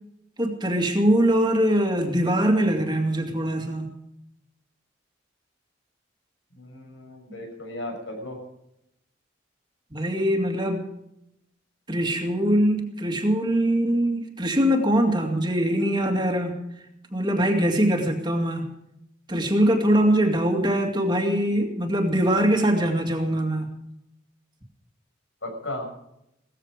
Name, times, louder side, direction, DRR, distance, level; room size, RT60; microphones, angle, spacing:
voice 1, 0.4-3.9 9.9-10.8 11.9-16.6 17.1-18.7 19.3-23.7, right 1 dB, 25° right, 3 dB, 2.2 m, -22 dB
voice 2, 6.5-8.4 25.4-25.9, left 1 dB, 75° left, 2 dB, 6.4 m, -35 dB
17.5 x 14.5 x 5.1 m, 0.80 s
head